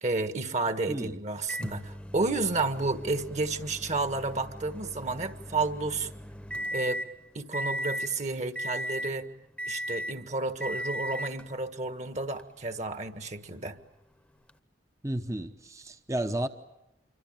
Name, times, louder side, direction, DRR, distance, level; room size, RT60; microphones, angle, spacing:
voice 1, 0.0-6.1 6.7-7.0 7.3-9.3 9.7-13.8, right 3 dB, 40° right, 1.6 m, -31 dB
voice 2, 0.9-1.2 15.0-16.5, right 1 dB, 15° right, 1.0 m, -32 dB
Microwave oven, 1.5-7.1 7.5-8.1 8.5-9.2 9.6-10.2 10.6-11.4 12.4-12.5 14.5-14.6, equal, 5° left, 1.1 m, -37 dB
27.0 x 24.5 x 9.0 m
head